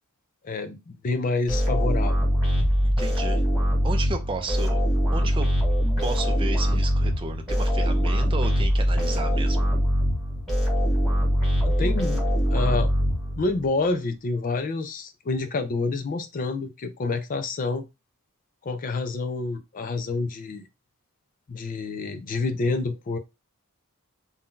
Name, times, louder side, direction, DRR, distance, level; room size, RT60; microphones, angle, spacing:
voice 1, 0.4-2.2 11.7-12.2 12.5-12.9 13.4-17.9 18.6-20.7 21.5-23.2, left 3 dB, 40° left, 0.4 m, -28 dB
sound 1, 1.5-13.7, equal, ahead, 1.5 m, -23 dB
voice 2, 2.8-3.4 3.8-4.8 5.1-5.5 6.0-9.7, right 3 dB, 25° right, 0.4 m, -33 dB
2.7 x 2.2 x 3.6 m
head